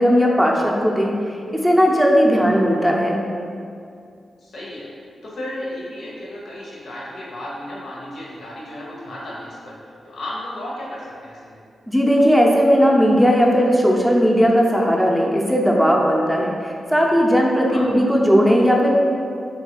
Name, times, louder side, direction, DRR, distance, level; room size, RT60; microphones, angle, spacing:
voice 1, 0.0-3.2 11.9-19.0, equal, ahead, -2 dB, 0.5 m, -17 dB
voice 2, 4.4-4.9 5.2-9.7 10.0-11.6 17.7-17.9, left 1 dB, 75° left, -5 dB, 0.7 m, -34 dB
2.8 x 2.3 x 3.8 m, 2.3 s
cardioid pair, 50°, 0 cm